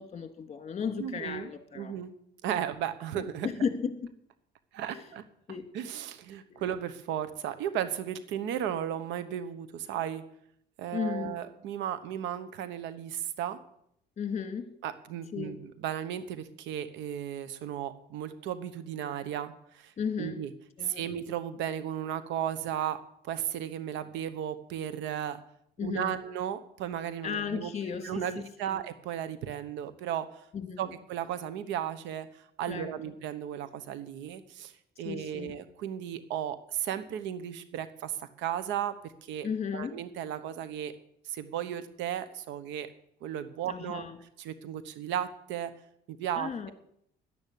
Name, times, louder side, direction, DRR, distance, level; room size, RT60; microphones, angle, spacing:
voice 1, 0.0-1.9 3.1-4.1 4.9-5.1 5.5-5.7 6.5-6.6 10.9-11.3 14.2-14.7 15.3-15.6 20.0-20.4 20.8-21.1 25.8-26.2 27.2-28.8 30.5-31.0 32.7-33.1 35.0-35.6 39.4-40.0 43.7-44.2 46.3-46.7, left 6 dB, 35° left, 7 dB, 2.5 m, -35 dB
voice 2, 1.0-2.1 2.4-3.5 4.7-5.2 5.7-10.2 10.8-13.6 14.8-15.6 15.8-19.9 20.2-20.5 20.8-25.4 25.8-27.7 28.0-30.3 30.8-34.7 35.0-39.5 39.7-40.9 41.2-42.9 43.2-44.0 44.4-45.7 46.1-46.7, right 10 dB, 85° right, 13 dB, 1.1 m, -35 dB
11.5 x 10.5 x 8.4 m, 0.72 s
cardioid pair, 95°, 19 cm